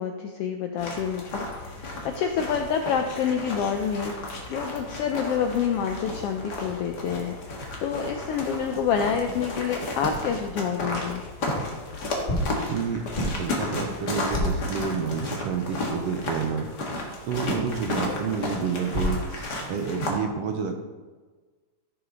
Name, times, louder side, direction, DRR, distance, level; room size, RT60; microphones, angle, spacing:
voice 1, 0.0-1.8 2.0-11.2, left 7 dB, 80° left, 5 dB, 1.3 m, -28 dB
sound 1, 0.8-20.2, left 2 dB, 40° left, 1.8 m, -33 dB
Filter pinging, 11.0-11.7 12.3-15.4 18.1-19.6, left 1 dB, 20° left, 1.8 m, -32 dB
voice 2, 12.7-16.7 17.3-20.7, right 6 dB, 70° right, 5 dB, 1.6 m, -29 dB
14.0 x 6.4 x 3.8 m, 1.3 s
omnidirectional pair, 3.3 m